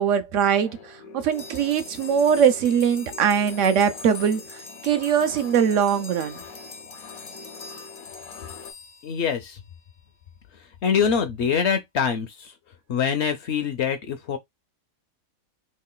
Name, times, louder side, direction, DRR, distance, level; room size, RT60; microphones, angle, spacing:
voice 1, 0.0-6.4, right 7 dB, 70° right, 0.9 m, -22 dB
sound 1, 0.6-8.7, left 5 dB, 90° left, 1.2 m, -44 dB
sound 2, 1.3-9.8, left 4 dB, 45° left, 0.4 m, -43 dB
voice 2, 9.0-9.6 10.8-12.5 12.9-14.4, left 7 dB, 65° left, 0.8 m, -24 dB
3.1 x 2.4 x 3.7 m
omnidirectional pair, 1.4 m